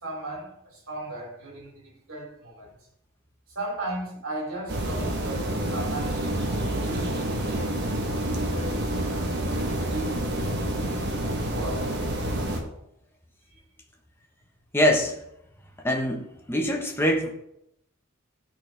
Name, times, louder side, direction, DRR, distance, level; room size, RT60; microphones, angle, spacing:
voice 1, 0.0-2.7 3.5-9.1 9.5-11.1 11.5-12.0, right 1 dB, 75° right, 2.9 m, -37 dB
sound 1, 4.7-12.6, right 1 dB, 55° right, 1.2 m, -28 dB
voice 2, 14.7-15.2 15.8-16.2 16.5-17.3, equal, 10° left, 1.2 m, -23 dB
12.0 x 4.3 x 3.4 m
head